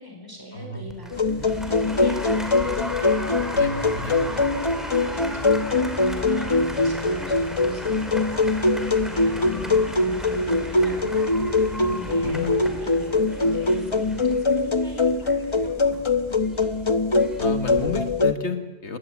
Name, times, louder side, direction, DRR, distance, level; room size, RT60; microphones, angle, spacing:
voice 1, 0.0-11.2 11.5-16.0, equal, 15° right, 1 dB, 4.8 m, -41 dB
voice 2, 0.5-0.9 3.5-4.2 12.1-12.6 17.4-19.0, left 3 dB, 70° left, 8 dB, 2.1 m, -32 dB
Applause, 0.9-18.0, equal, ahead, 2.9 m, -38 dB
sound 1, 1.1-18.3, left 3 dB, 25° left, 1.0 m, -23 dB
sound 2, 1.2-12.7, left 1 dB, 55° right, 4.3 m, -41 dB
20.5 x 18.0 x 8.7 m, 1.2 s
omnidirectional pair, 1.2 m